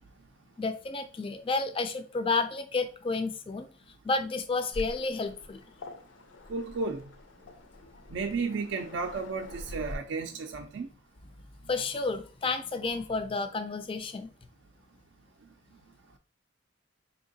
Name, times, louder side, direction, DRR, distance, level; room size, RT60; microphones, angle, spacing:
voice 1, 0.6-3.7 4.0-5.6 11.7-14.3, left 3 dB, 25° left, 9 dB, 0.3 m, -31 dB
Waves surf, 4.7-9.9, left 1 dB, 75° left, 0.5 m, -45 dB
voice 2, 6.5-7.0 8.1-10.9, right 4 dB, 65° right, 3 dB, 0.4 m, -33 dB
4.4 x 2.8 x 2.7 m, 0.39 s
head